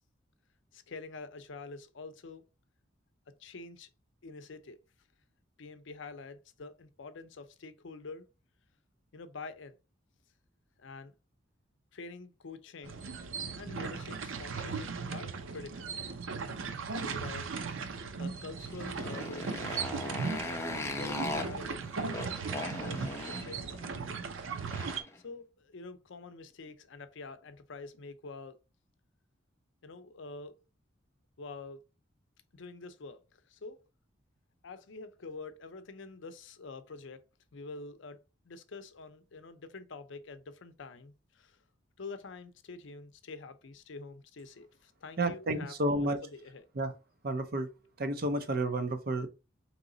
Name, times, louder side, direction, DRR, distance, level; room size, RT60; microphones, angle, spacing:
voice 1, 0.7-2.4 3.4-3.9 4.2-4.8 5.6-8.3 9.1-9.7 10.8-11.1 11.9-13.0 13.6-15.8 16.9-17.5 17.9-19.8 20.8-23.8 25.2-28.6 29.8-30.5 31.4-31.8 32.5-33.8 34.6-37.2 37.5-38.2 38.4-41.6 42.0-46.7, left 3 dB, 70° left, 0.6 m, -46 dB
sound 1, 12.8-25.0, right 5 dB, 85° right, 0.6 m, -38 dB
Motorcycle, 18.5-25.2, left 1 dB, 15° left, 0.7 m, -39 dB
voice 2, 45.2-46.2 46.7-46.9 47.2-47.7 48.0-49.3, right 1 dB, 50° right, 0.7 m, -31 dB
3.9 x 3.0 x 3.8 m
head